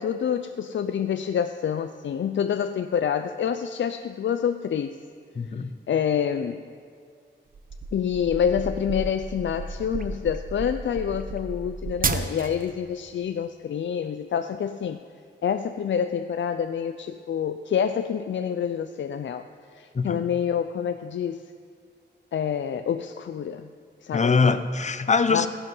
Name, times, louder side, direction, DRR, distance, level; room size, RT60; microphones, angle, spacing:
voice 1, 0.0-5.0 5.9-6.6 7.9-15.0 15.4-19.5 19.8-21.4 22.3-23.7 24.0-24.6 25.3-25.5, left 8 dB, 85° left, 10 dB, 0.4 m, -27 dB
voice 2, 5.4-5.7 19.9-20.2 24.1-25.5, left 4 dB, 40° left, 11 dB, 0.6 m, -22 dB
sound 1, 7.5-12.7, right 4 dB, 50° right, 0.8 m, -32 dB
15.5 x 11.0 x 5.4 m, 2.1 s
wide cardioid pair, 110°, 19 cm